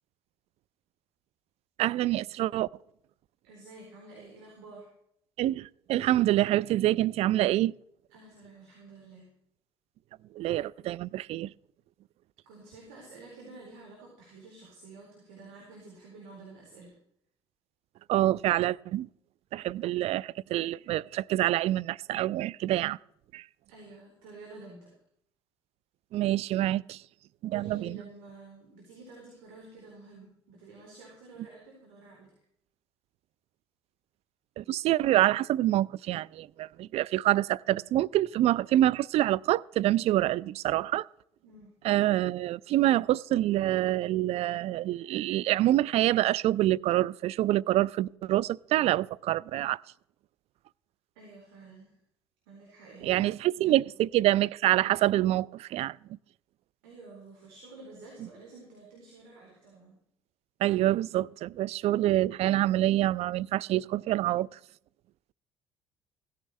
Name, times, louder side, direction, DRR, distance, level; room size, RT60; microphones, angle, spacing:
voice 1, 1.8-2.7 5.4-7.7 10.4-11.5 18.1-19.1 19.5-23.0 23.3-23.4 26.1-27.0 27.4-28.0 34.6-41.1 41.8-49.8 53.0-56.0 60.6-64.5, right 14 dB, 55° right, 0.4 m, -26 dB
voice 2, 3.4-4.9 8.1-9.3 12.5-16.9 23.7-24.9 27.5-32.3 41.4-41.7 51.1-52.0 52.5-53.3 53.6-54.0 56.8-60.0, right 3 dB, 80° right, 4.0 m, -50 dB
16.5 x 14.0 x 3.2 m
hypercardioid pair, 55°, 12 cm